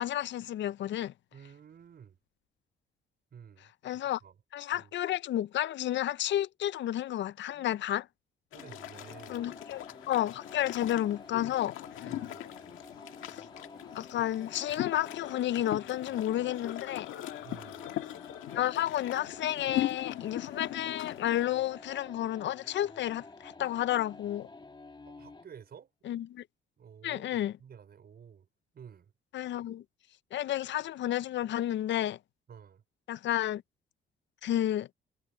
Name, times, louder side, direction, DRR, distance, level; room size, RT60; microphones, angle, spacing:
voice 1, 0.0-1.1 3.8-4.2 4.5-8.1 9.3-12.1 13.3-13.4 13.9-17.1 18.5-24.5 26.0-26.4 27.0-27.5 29.3-29.8 30.3-32.2 33.1-33.6 34.4-34.9, left 12 dB, 65° left, 0.6 m, -31 dB
voice 2, 1.3-2.2 3.3-4.4 4.7-4.9 7.5-7.8 8.5-9.5 12.1-12.5 17.4-17.9 25.1-25.9 26.8-28.5 28.7-29.1 32.5-32.8, right 7 dB, 55° right, 5.5 m, -52 dB
sound 1, 8.5-21.4, left 14 dB, 90° left, 1.8 m, -40 dB
sound 2, 8.5-25.6, left 3 dB, 25° left, 2.3 m, -51 dB
cardioid pair, 90°, 20 cm